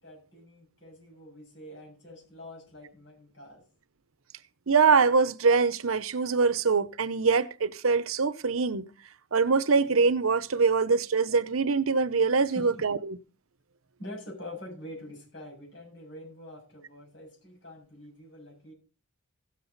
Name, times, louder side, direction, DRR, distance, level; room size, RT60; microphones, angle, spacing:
voice 1, 0.0-3.6 12.4-12.8 14.0-18.7, left 1 dB, 60° left, 6.9 m, -45 dB
voice 2, 4.7-8.9 9.3-13.2, right 5 dB, 90° right, 0.8 m, -24 dB
16.5 x 7.6 x 4.0 m
head